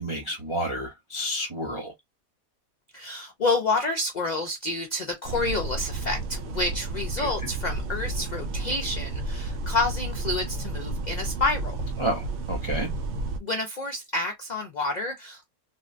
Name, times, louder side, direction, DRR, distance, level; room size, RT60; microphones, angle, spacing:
voice 1, 0.0-1.9 7.2-7.3 12.0-12.9, equal, 35° right, 0.4 m, -30 dB
voice 2, 2.9-11.8 13.4-15.5, left 2 dB, 60° left, 0.4 m, -29 dB
sound 1, 5.2-13.4, right 2 dB, 65° right, 0.7 m, -32 dB
3.6 x 2.2 x 2.5 m
omnidirectional pair, 1.5 m